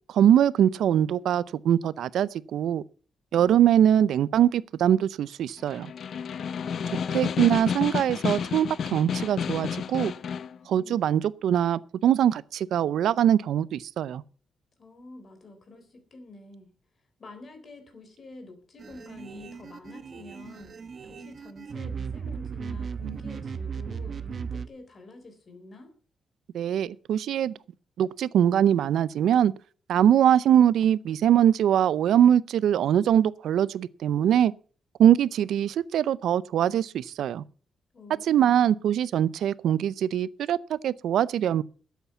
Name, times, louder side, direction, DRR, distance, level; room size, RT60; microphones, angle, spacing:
voice 1, 0.1-2.8 3.3-5.9 7.1-10.1 10.7-14.2 26.5-27.5 28.0-29.5 29.9-34.5 35.0-37.4 38.3-41.6, right 10 dB, 85° right, 0.5 m, -22 dB
Snare drum, 5.6-10.6, left 7 dB, 55° left, 0.6 m, -31 dB
voice 2, 10.7-11.1 14.8-16.7 17.2-25.9 37.9-38.7, left 3 dB, 35° left, 3.8 m, -48 dB
sound 1, 18.8-24.7, right 6 dB, 40° right, 0.9 m, -36 dB
12.5 x 8.2 x 7.0 m
wide cardioid pair, 155°, 0 cm